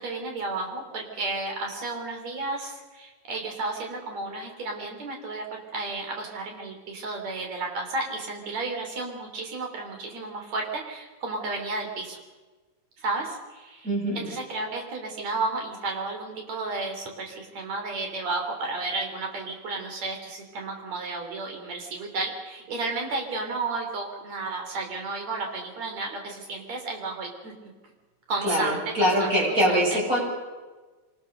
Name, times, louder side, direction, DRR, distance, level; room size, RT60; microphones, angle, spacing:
voice 1, 0.0-12.2 13.0-13.9 14.2-27.5 28.3-29.3 29.7-29.8, right 3 dB, 65° right, 2 dB, 4.6 m, -32 dB
voice 2, 13.8-14.2 28.4-30.2, equal, 25° right, -3 dB, 7.8 m, -23 dB
25.5 x 19.0 x 6.7 m, 1.3 s
omnidirectional pair, 3.4 m